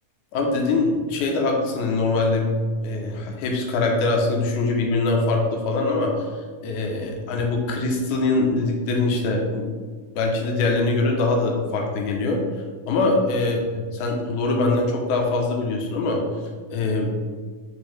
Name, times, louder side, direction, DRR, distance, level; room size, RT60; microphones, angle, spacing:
voice 1, 0.3-2.5 2.8-6.3 6.6-9.7 10.2-12.4 12.9-13.6 13.9-16.2 16.7-17.1, left 3 dB, 75° left, 1 dB, 2.1 m, -23 dB
8.1 x 3.6 x 3.3 m, 1.5 s
omnidirectional pair, 3.9 m